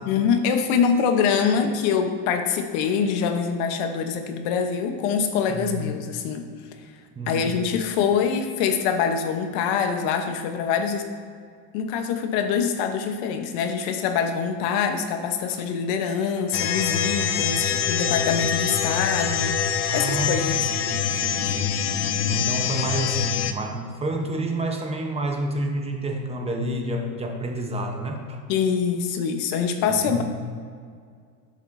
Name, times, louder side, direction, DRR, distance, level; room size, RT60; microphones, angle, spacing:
voice 1, 0.1-6.5 7.3-11.1 11.7-20.6 28.5-30.2, left 6 dB, 65° left, 6 dB, 1.1 m, -24 dB
voice 2, 5.5-5.8 7.2-7.6 19.9-21.8 22.3-28.4 29.9-30.2, right 1 dB, 15° right, 2 dB, 0.9 m, -29 dB
sound 1, 16.5-23.5, left 8 dB, 30° left, 0.4 m, -25 dB
11.0 x 7.3 x 2.7 m, 2.1 s
supercardioid pair, 140°, 46 cm